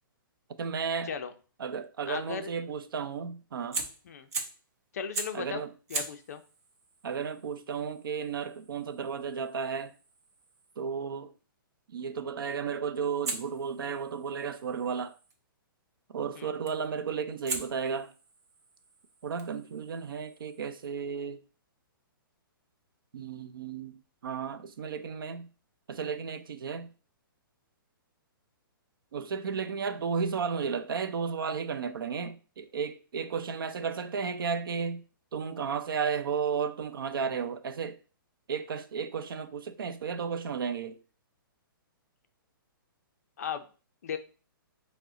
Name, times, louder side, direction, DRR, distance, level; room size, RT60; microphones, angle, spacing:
voice 1, 0.6-1.1 1.6-3.8 5.3-5.7 7.0-9.9 10.8-11.3 11.9-15.1 16.1-18.1 19.2-21.4 23.1-23.9 24.2-25.5 25.9-26.9 29.1-35.0 35.3-38.0 38.5-41.0, right 6 dB, 70° right, 0.5 m, -33 dB
voice 2, 2.1-2.5 4.0-4.3 4.9-5.6 5.9-6.4 16.3-16.5 43.4-43.7 44.0-44.2, left 7 dB, 45° left, 0.5 m, -36 dB
Fire, 3.7-4.7 5.1-5.5 5.9-10.8 13.2-15.3 16.7-17.0 17.5-20.9, right 3 dB, 40° right, 0.8 m, -41 dB
4.8 x 2.1 x 3.7 m
hypercardioid pair, 175°, 12 cm